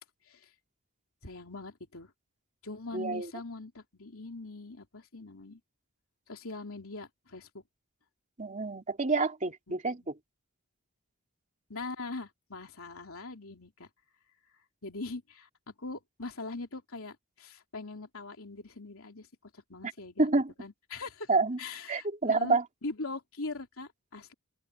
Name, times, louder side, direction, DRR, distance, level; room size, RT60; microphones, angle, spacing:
voice 1, 1.2-2.1 2.6-5.6 6.3-7.6 9.7-10.1 11.7-13.9 14.8-19.3 19.5-20.3 20.6-21.3 21.6-24.3, left 3 dB, 65° left, 3.4 m, -42 dB
voice 2, 2.9-3.3 8.4-10.2 20.2-20.5 21.3-21.6 21.9-22.6, right 3 dB, 35° right, 3.1 m, -28 dB
open air
head